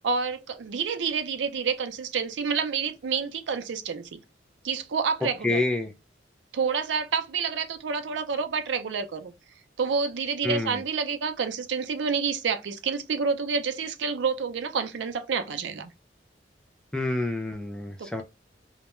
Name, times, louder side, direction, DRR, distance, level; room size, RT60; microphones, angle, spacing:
voice 1, 0.0-4.2 4.6-5.6 6.5-9.3 9.8-15.9 18.0-18.2, right 5 dB, 85° right, 0.4 m, -28 dB
voice 2, 5.4-5.9 10.4-10.8 16.9-18.2, left 2 dB, 5° left, 0.3 m, -28 dB
2.2 x 2.1 x 2.9 m
head